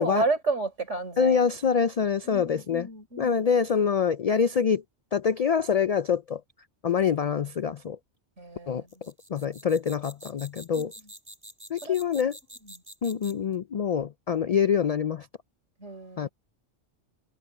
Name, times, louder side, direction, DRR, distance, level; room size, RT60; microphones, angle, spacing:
voice 1, 0.0-1.4 2.2-3.4 8.4-9.1 10.8-10.9 11.8-11.9 12.6-12.8 15.8-16.3, right 3 dB, 85° right, 4.3 m, -31 dB
voice 2, 1.2-2.9 3.2-4.8 5.1-6.4 6.8-8.0 8.7-8.8 9.3-10.9 11.7-12.4 13.0-15.3 16.2-16.3, left 7 dB, 70° left, 0.3 m, -25 dB
sound 1, 8.9-13.5, right 1 dB, 20° right, 2.8 m, -47 dB
omnidirectional pair, 1.2 m